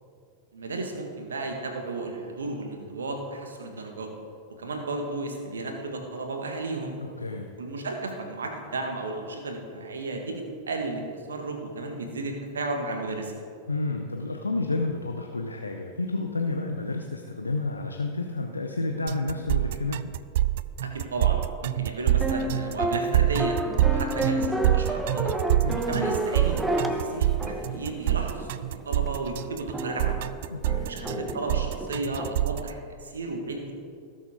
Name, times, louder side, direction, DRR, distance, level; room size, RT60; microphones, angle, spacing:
voice 1, 0.5-4.1 4.6-6.9 7.6-13.4 20.8-23.6 23.8-25.4 25.9-30.3 30.9-33.8, right 2 dB, 70° right, 3 dB, 1.7 m, -33 dB
voice 2, 7.0-7.5 13.7-20.0 25.6-25.9 30.5-30.9, left 3 dB, 80° left, 3 dB, 0.7 m, -30 dB
sound 1, 19.1-32.7, right 14 dB, 55° right, 0.3 m, -26 dB
sound 2, 22.2-28.6 29.1-29.2 29.7-32.3, right 1 dB, 5° right, 0.9 m, -30 dB
17.5 x 7.2 x 3.8 m, 2.4 s
figure-of-eight pair, 90°, 0 cm